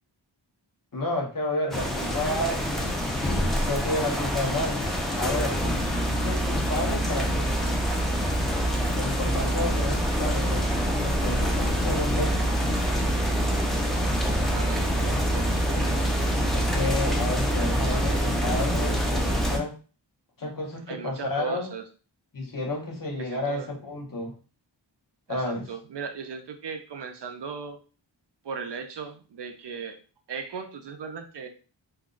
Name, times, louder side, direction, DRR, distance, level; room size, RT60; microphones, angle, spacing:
voice 1, 0.9-4.8 5.2-5.6 6.1-7.5 9.0-12.6 16.5-19.8 20.4-21.7 22.3-24.4 25.3-25.7, left 2 dB, 45° left, 0 dB, 0.9 m, -31 dB
sound 1, 1.7-19.6, equal, ahead, 0.6 m, -25 dB
voice 2, 14.5-16.1 17.6-18.2 20.9-21.8 23.2-23.7 25.3-27.8 28.4-30.0 30.3-31.5, right 5 dB, 65° right, 6 dB, 0.6 m, -37 dB
2.6 x 2.2 x 3.8 m, 0.35 s
wide cardioid pair, 100°, 46 cm